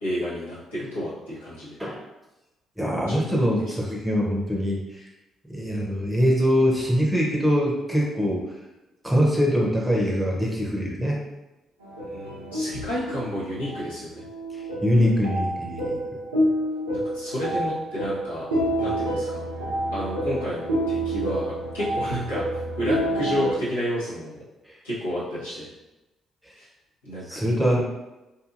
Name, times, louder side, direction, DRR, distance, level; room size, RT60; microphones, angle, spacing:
voice 1, 0.0-1.8 3.1-3.7 12.0-14.2 16.9-18.4 18.8-19.4 19.9-22.4 22.8-24.4 24.8-25.7 26.6-26.7 27.0-27.3 27.6-27.7, equal, 85° left, -10 dB, 1.0 m, -31 dB
voice 2, 2.8-5.0 5.5-8.5 9.0-11.2 14.5-16.0 24.7-24.8 27.3-27.8, equal, 5° right, -3 dB, 0.8 m, -23 dB
sound 1, 11.8-23.5, right 1 dB, 85° right, 0.5 m, -28 dB
2.7 x 2.6 x 2.5 m, 1.0 s
figure-of-eight pair, 45°, 0 cm